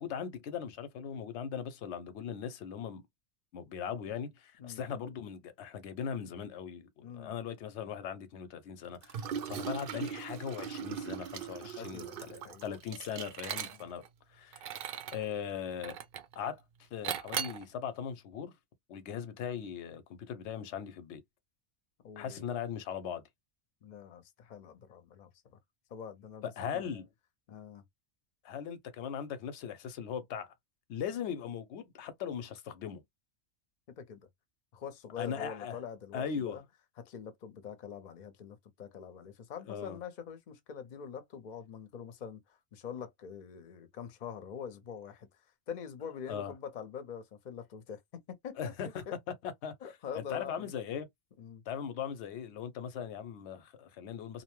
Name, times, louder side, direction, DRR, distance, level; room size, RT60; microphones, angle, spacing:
voice 1, 0.0-3.0 3.5-14.0 14.3-14.6 15.1-16.0 16.4-16.6 16.9-18.5 18.9-21.2 22.2-23.2 26.4-27.1 28.4-30.5 30.9-33.0 35.2-35.8 36.1-36.6 39.7-40.0 46.3-46.5 48.6-51.1 51.7-54.4, left 7 dB, 90° left, 0.9 m, -39 dB
voice 2, 7.0-7.4 11.6-12.6 13.5-13.9 22.0-22.5 23.8-25.3 25.9-26.9 27.5-27.8 33.9-34.3 34.7-36.6 37.0-42.4 42.7-45.3 45.7-48.7 49.1-49.2 49.8-50.7 51.4-51.6, left 7 dB, 50° left, 0.7 m, -44 dB
Liquid, 9.0-14.1 14.5-15.2 15.8-16.4 17.0-17.6, right 8 dB, 60° right, 0.6 m, -39 dB
2.7 x 2.0 x 2.9 m
omnidirectional pair, 1.1 m